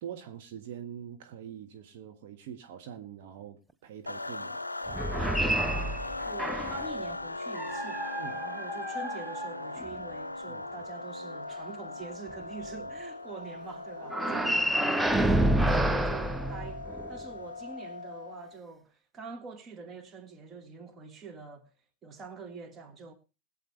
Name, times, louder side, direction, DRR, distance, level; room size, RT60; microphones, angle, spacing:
voice 1, 0.0-5.4 8.2-8.4 10.5-10.7 12.7-12.9 14.3-14.9 15.6-15.8, right 9 dB, 50° right, 1.5 m, -44 dB
sound 1, 4.1-18.6, left 2 dB, 85° left, 0.5 m, -39 dB
sound 2, 4.9-6.9 7.5-10.0 14.1-17.2, right 1 dB, 5° right, 0.5 m, -29 dB
voice 2, 6.2-16.8 17.1-21.7 22.0-23.1, right 4 dB, 25° right, 1.7 m, -45 dB
21.5 x 7.8 x 3.3 m
figure-of-eight pair, 90°, 0 cm